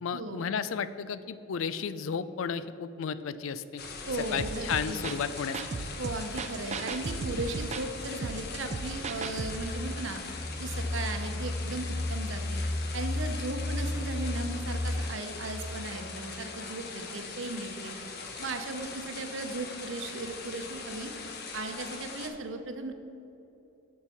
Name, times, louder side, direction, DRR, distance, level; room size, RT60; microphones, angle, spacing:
voice 1, 0.0-3.8 4.3-5.6, left 6 dB, 80° left, 14 dB, 0.4 m, -33 dB
sound 1, 3.8-22.3, left 4 dB, 55° left, 0.8 m, -41 dB
voice 2, 4.1-5.0 6.0-10.2 10.6-12.6 12.9-18.0 18.4-21.1 21.5-22.9, right 2 dB, 70° right, 6 dB, 0.8 m, -37 dB
sound 2, 4.4-9.7, right 4 dB, 35° right, 0.3 m, -37 dB
sound 3, 8.0-15.7, left 1 dB, 20° left, 0.5 m, -34 dB
7.1 x 6.6 x 5.8 m, 3.0 s
head